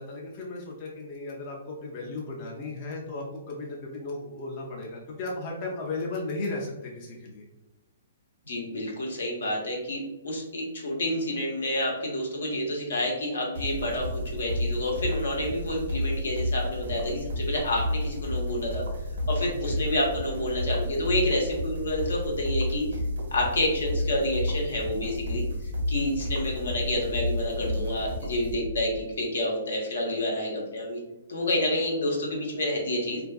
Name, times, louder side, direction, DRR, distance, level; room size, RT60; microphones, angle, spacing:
voice 1, 0.0-7.4 19.5-19.8, left 2 dB, 40° left, -2 dB, 0.4 m, -35 dB
voice 2, 8.5-18.9 19.3-23.0 23.3-31.0 31.3-33.2, left 1 dB, 80° left, -1 dB, 0.8 m, -29 dB
sound 1, 13.5-29.0, left 1 dB, 75° right, 0.5 m, -31 dB
2.4 x 2.3 x 2.2 m, 1.0 s
hypercardioid pair, 145°, 0 cm